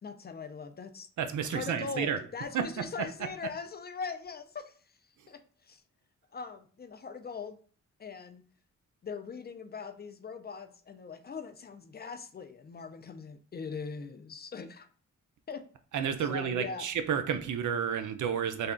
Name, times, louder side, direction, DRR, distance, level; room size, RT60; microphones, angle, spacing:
voice 1, 0.0-1.1 1.4-4.8 5.3-5.8 6.3-7.6 8.0-8.4 9.0-14.9 15.5-15.6 16.2-16.9, left 5 dB, 35° left, 10 dB, 0.4 m, -41 dB
voice 2, 1.2-2.2 2.5-2.6 15.9-18.7, right 8 dB, 75° right, 8 dB, 0.5 m, -31 dB
3.4 x 2.3 x 3.7 m, 0.44 s
cardioid pair, 95°, 30 cm